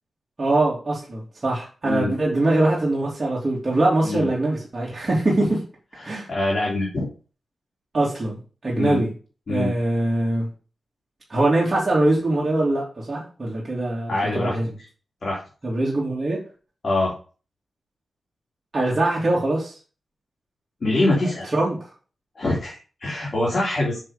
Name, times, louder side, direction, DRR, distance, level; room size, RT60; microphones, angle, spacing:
voice 1, 0.4-5.6 6.0-6.3 7.9-9.1 9.5-10.5 11.3-14.7 15.6-16.4 18.7-19.7 21.5-21.8, right 2 dB, 30° right, -6 dB, 3.0 m, -22 dB
voice 2, 5.9-7.1 8.8-9.0 9.5-9.7 14.1-14.6 15.2-15.4 16.8-17.1 20.8-21.5 22.4-24.0, left 2 dB, 45° left, -4 dB, 3.5 m, -24 dB
7.3 x 7.2 x 5.2 m, 0.36 s
wide cardioid pair, 135°, 0 cm